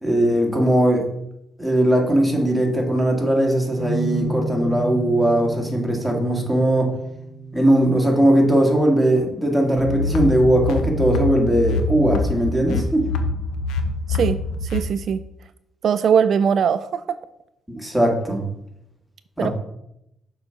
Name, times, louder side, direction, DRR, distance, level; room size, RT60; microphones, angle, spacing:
voice 1, 0.0-1.0 1.6-6.9 7.5-13.1 17.7-18.4 19.4-19.5, right 1 dB, ahead, 0 dB, 2.0 m, -19 dB
sound 1, 3.8-11.0, right 1 dB, 60° left, 2.4 m, -33 dB
sound 2, 9.8-14.8, left 3 dB, 85° left, 0.8 m, -25 dB
voice 2, 14.7-15.2 15.8-17.0 19.4-19.5, right 7 dB, 60° right, 12 dB, 0.3 m, -20 dB
6.8 x 4.0 x 5.8 m, 0.80 s
cardioid pair, 90°, 0 cm